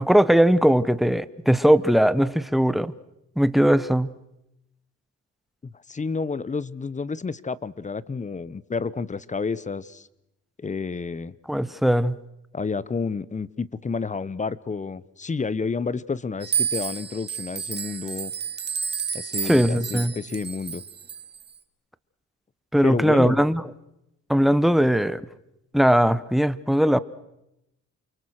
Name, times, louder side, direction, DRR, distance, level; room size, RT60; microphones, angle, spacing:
voice 1, 0.0-2.9 3.4-4.1 11.5-12.2 19.4-20.1 22.7-23.6 24.3-25.2 25.7-27.0, equal, ahead, 1.0 m, -19 dB
voice 2, 5.6-10.1 10.6-11.3 12.5-18.3 19.1-20.8 22.8-23.4, left 4 dB, 25° left, 1.0 m, -30 dB
sound 1, 16.4-21.4, right 7 dB, 35° right, 1.9 m, -30 dB
29.0 x 24.0 x 6.5 m
cardioid pair, 90°, 30 cm